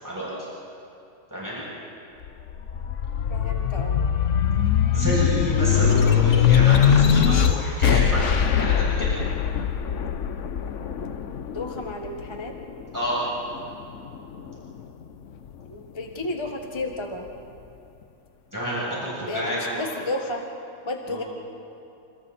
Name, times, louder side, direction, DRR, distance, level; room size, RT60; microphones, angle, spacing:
voice 1, 1.3-1.6 4.9-9.1 12.9-13.2 18.5-19.8 21.1-21.2, equal, 10° right, -8 dB, 7.8 m, -29 dB
sound 1, 2.2-13.0 13.5-14.7, left 8 dB, 60° left, 0.8 m, -21 dB
voice 2, 3.3-4.1 5.7-6.1 11.5-12.6 15.7-17.3 19.3-20.5 20.8-21.2, left 2 dB, 15° left, 2 dB, 1.4 m, -32 dB
29.5 x 28.0 x 4.3 m, 2.7 s
omnidirectional pair, 2.3 m